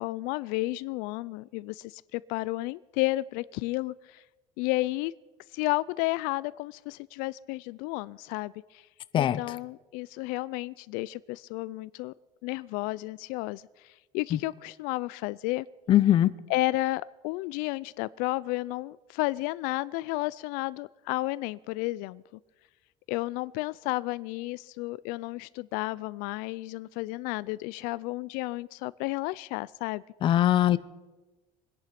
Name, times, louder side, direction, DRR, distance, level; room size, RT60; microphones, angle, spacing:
voice 1, 0.0-4.2 4.6-5.1 5.5-8.8 9.1-12.1 12.4-15.7 16.5-22.2 23.1-30.0, left 20 dB, 80° left, 20 dB, 0.4 m, -32 dB
voice 2, 15.9-16.3 30.2-30.8, left 12 dB, 35° left, 17 dB, 0.6 m, -21 dB
23.5 x 10.5 x 5.9 m, 1.2 s
cardioid pair, 155°, 14 cm